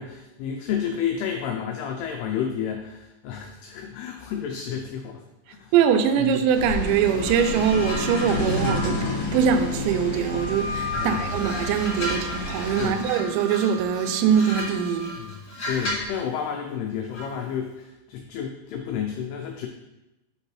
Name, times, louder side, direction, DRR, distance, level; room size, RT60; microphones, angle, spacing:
voice 1, 0.0-5.2 5.5-5.7 11.0-11.2 12.8-13.0 15.2-15.4 15.6-19.7, left 8 dB, 90° left, 2.3 m, -31 dB
voice 2, 5.7-9.0 9.3-15.1, right 7 dB, 80° right, 2.8 m, -22 dB
sound 1, 6.5-12.9, left 2 dB, 70° left, 1.4 m, -30 dB
sound 2, 7.2-10.5 10.9-16.2 17.1-17.4, equal, 35° left, 2.7 m, -35 dB
Wind instrument woodwind instrument, 10.2-15.2, left 3 dB, 50° right, 1.1 m, -37 dB
7.4 x 5.8 x 3.1 m
omnidirectional pair, 5.3 m